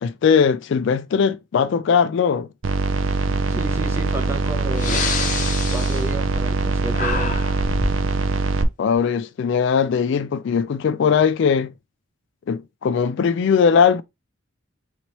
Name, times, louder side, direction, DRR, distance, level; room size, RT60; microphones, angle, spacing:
voice 1, 0.0-2.5 8.8-11.7 12.5-14.0, left 6 dB, 60° left, 0.3 m, -19 dB
sound 1, 2.6-8.6, right 4 dB, 70° right, 0.5 m, -22 dB
voice 2, 3.5-5.0 5.7-7.4, right 1 dB, 10° right, 0.6 m, -31 dB
Breathing, 4.1-4.2 4.7-6.7 6.9-8.0, left 4 dB, 40° left, 0.7 m, -27 dB
4.1 x 3.0 x 3.1 m
head